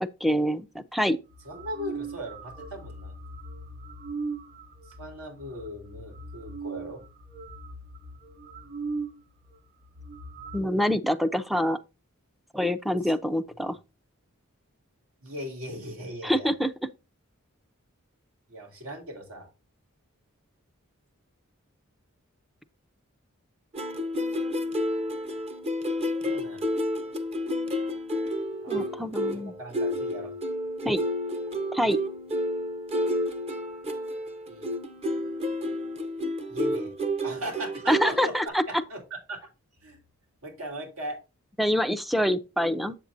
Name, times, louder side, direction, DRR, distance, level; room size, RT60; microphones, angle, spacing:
voice 1, 0.0-1.2 10.5-11.8 12.5-13.8 16.2-16.7 28.7-29.5 30.8-31.0 31.7-32.0 37.9-38.6 41.6-43.0, equal, ahead, 0.5 m, -25 dB
sound 1, 1.3-9.2 9.5-9.6 9.8-10.6, right 3 dB, 50° right, 3.4 m, -39 dB
voice 2, 1.4-3.2 5.0-7.0 15.2-16.5 18.5-19.5 26.2-26.7 28.6-30.3 34.5-34.7 36.5-37.0 37.2-39.0 39.3-39.5 39.8-40.0 40.4-41.2, equal, 85° right, 4.0 m, -39 dB
sound 2, 23.7-38.5, equal, 30° right, 0.8 m, -30 dB
7.9 x 7.3 x 2.6 m
head